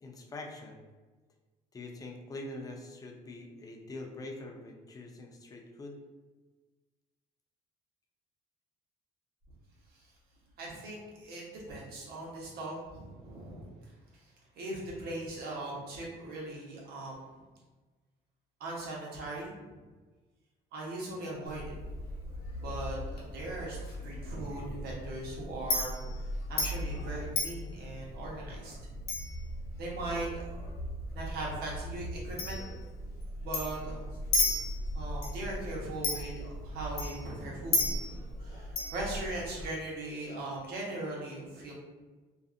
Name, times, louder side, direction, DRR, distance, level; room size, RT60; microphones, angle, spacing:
voice 1, 0.0-0.8 1.7-6.0, left 2 dB, 20° left, 2 dB, 0.4 m, -44 dB
voice 2, 10.6-13.7 14.1-14.3 14.6-17.4 18.6-19.8 20.7-21.7 22.5-23.8 24.0-28.9 29.8-30.7 31.1-32.6 33.4-34.6 34.9-41.7, right 2 dB, 70° right, -3 dB, 0.9 m, -40 dB
Chink clink, 21.5-39.7, left 2 dB, 65° left, 0.8 m, -36 dB
2.5 x 2.4 x 2.4 m, 1.3 s
cardioid pair, 110°, 17 cm